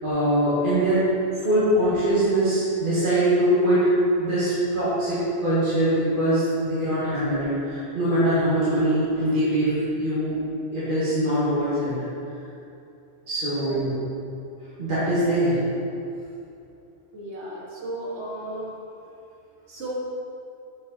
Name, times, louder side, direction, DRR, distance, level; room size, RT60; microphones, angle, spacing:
voice 1, 0.0-1.0 1.4-3.9 4.2-10.4 10.7-11.9 13.3-13.9 14.8-15.6, right 1 dB, 45° right, -13 dB, 2.1 m, -22 dB
voice 2, 17.1-18.7 19.7-19.9, right 1 dB, 65° right, -5 dB, 1.9 m, -34 dB
8.2 x 5.4 x 4.1 m, 2.7 s
omnidirectional pair, 1.2 m